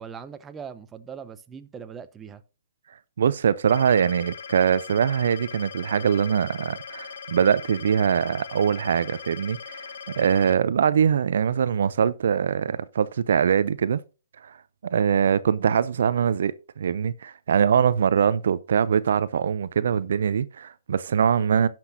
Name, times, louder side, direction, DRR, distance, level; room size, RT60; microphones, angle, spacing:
voice 1, 0.0-2.4, right 7 dB, 15° right, 0.7 m, -40 dB
voice 2, 3.2-9.9 10.2-14.0 14.4-14.6 14.8-21.7, right 7 dB, 65° right, 0.4 m, -22 dB
sound 1, 3.7-10.5, left 7 dB, 65° left, 0.9 m, -40 dB
17.0 x 5.9 x 2.6 m
figure-of-eight pair, 120°, 0 cm